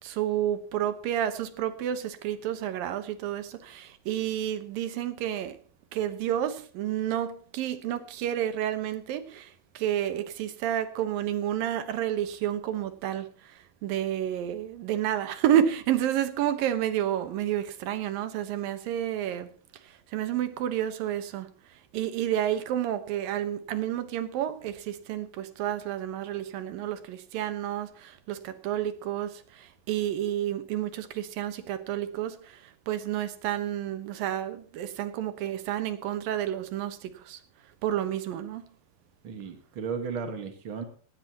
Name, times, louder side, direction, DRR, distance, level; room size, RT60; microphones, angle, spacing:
voice 1, 0.0-5.6 5.9-19.5 19.8-37.4 37.8-38.6, right 11 dB, 75° right, 2.9 m, -30 dB
voice 2, 39.2-40.8, right 5 dB, 50° right, 1.7 m, -34 dB
18.0 x 18.0 x 2.9 m
omnidirectional pair, 4.1 m